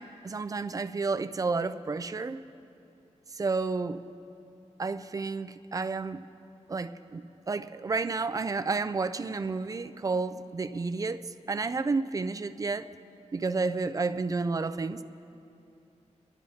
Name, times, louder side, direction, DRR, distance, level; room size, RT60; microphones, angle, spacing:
voice 1, 0.0-2.4 3.3-4.0 4.8-6.3 6.7-12.9 13.3-15.0, right 4 dB, 30° right, 0.3 m, -31 dB
23.5 x 11.5 x 2.8 m
wide cardioid pair, 160°, 12 cm